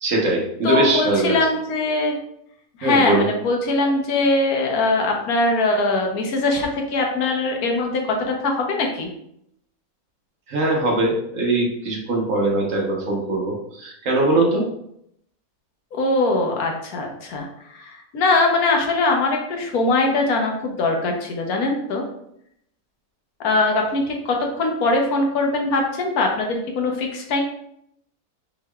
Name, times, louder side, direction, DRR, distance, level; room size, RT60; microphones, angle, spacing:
voice 1, 0.0-1.4 2.8-3.3 10.5-14.6, right 2 dB, 60° right, -2 dB, 1.3 m, -21 dB
voice 2, 0.6-2.1 2.8-9.1 15.9-22.0 23.4-27.4, left 2 dB, 80° left, 2 dB, 1.3 m, -21 dB
5.6 x 3.1 x 2.3 m, 0.74 s
omnidirectional pair, 1.6 m